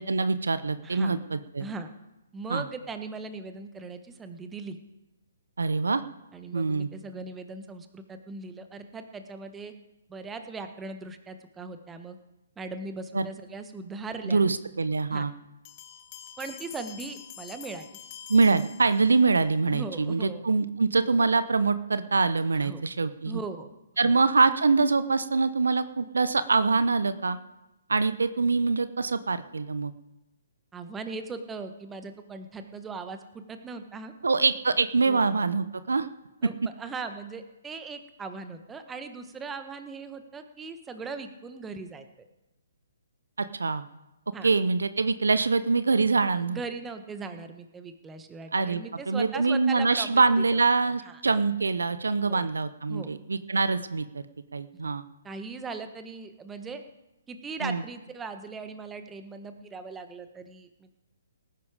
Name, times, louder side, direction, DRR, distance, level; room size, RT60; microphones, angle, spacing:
voice 1, 0.0-1.7 2.5-2.6 5.6-6.0 6.5-6.9 13.1-13.3 14.2-15.3 18.3-23.4 24.0-27.4 27.9-29.9 34.2-36.1 36.4-36.5 43.4-43.8 44.4-46.6 48.5-54.2 54.5-55.0 57.6-57.8, right 4 dB, 75° right, 13 dB, 0.7 m, -24 dB
voice 2, 0.8-1.1 1.6-1.9 2.3-4.8 6.3-9.7 10.1-12.2 12.6-14.4 15.1-15.3 16.4-17.9 19.7-20.4 22.6-22.8 23.2-23.7 24.0-24.1 30.7-34.1 35.0-35.3 36.4-36.5 36.8-42.1 44.3-44.5 46.5-51.2 52.3-52.5 52.9-53.1 55.2-56.8 57.3-60.9, right 4 dB, 10° right, 8 dB, 1.3 m, -39 dB
Bell, 15.7-19.4, left 11 dB, 35° left, 1.5 m, -46 dB
18.5 x 10.0 x 5.0 m, 0.96 s
figure-of-eight pair, 130°, 0 cm